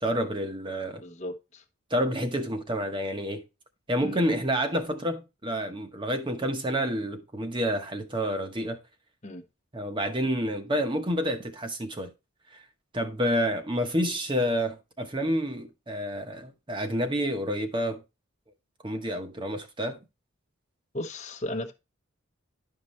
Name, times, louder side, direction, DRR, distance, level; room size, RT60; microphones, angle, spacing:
voice 1, 0.0-1.0 1.9-3.4 3.9-8.8 9.7-12.1 12.5-12.6 12.9-18.0 18.8-20.0, equal, 20° right, 1.0 m, -29 dB
voice 2, 1.0-1.6 4.0-4.2 9.2-9.4 20.9-21.7, left 1 dB, 35° left, 1.0 m, -35 dB
11.0 x 5.6 x 3.2 m
head